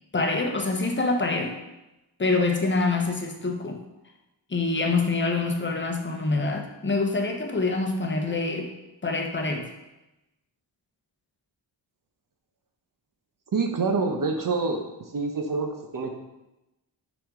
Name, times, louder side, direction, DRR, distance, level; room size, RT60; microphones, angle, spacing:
voice 1, 0.1-1.6 2.2-3.8 4.5-8.7 9.0-9.7, left 3 dB, 25° left, 3 dB, 0.9 m, -25 dB
voice 2, 13.5-14.8 15.1-16.1, right 4 dB, 45° right, 4 dB, 0.9 m, -26 dB
5.8 x 5.3 x 3.7 m, 0.96 s
cardioid pair, 90°, 44 cm